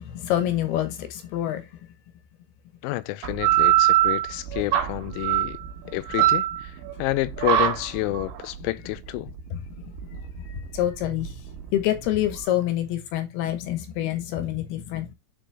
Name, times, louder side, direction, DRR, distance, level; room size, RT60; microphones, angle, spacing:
voice 1, 0.0-1.7 5.8-6.3 9.5-9.9 10.1-11.5 11.7-15.1, left 12 dB, 70° left, 2.8 m, -27 dB
voice 2, 2.8-5.6 5.9-6.4 7.0-9.3, left 18 dB, 90° left, 2.9 m, -29 dB
sound 1, 3.2-12.4, right 13 dB, 85° right, 3.7 m, -24 dB
9.2 x 4.1 x 3.3 m
omnidirectional pair, 5.2 m